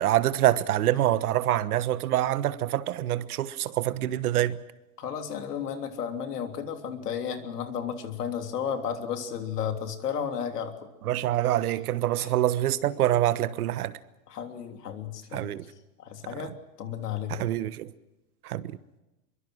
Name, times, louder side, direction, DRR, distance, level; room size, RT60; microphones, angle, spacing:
voice 1, 0.0-4.6 11.0-13.9 15.3-15.6 17.3-17.9 18.4-18.8, right 13 dB, 70° right, 1.3 m, -26 dB
voice 2, 5.0-10.7 12.1-12.3 14.3-15.5 16.0-17.5, left 8 dB, 85° left, 3.3 m, -33 dB
24.0 x 23.0 x 6.2 m
hypercardioid pair, 130°, 46 cm